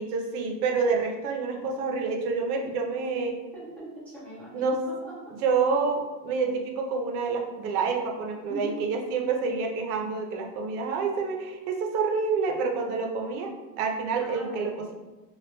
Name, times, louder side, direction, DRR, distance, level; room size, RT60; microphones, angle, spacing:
voice 1, 0.0-3.4 4.5-4.8 5.4-14.9, right 4 dB, 75° right, 2 dB, 0.6 m, -28 dB
voice 2, 3.5-5.3 8.5-8.8 14.2-14.9, equal, 5° left, -11 dB, 0.4 m, -41 dB
2.3 x 2.2 x 2.8 m, 1.2 s
cardioid pair, 155°, 45 cm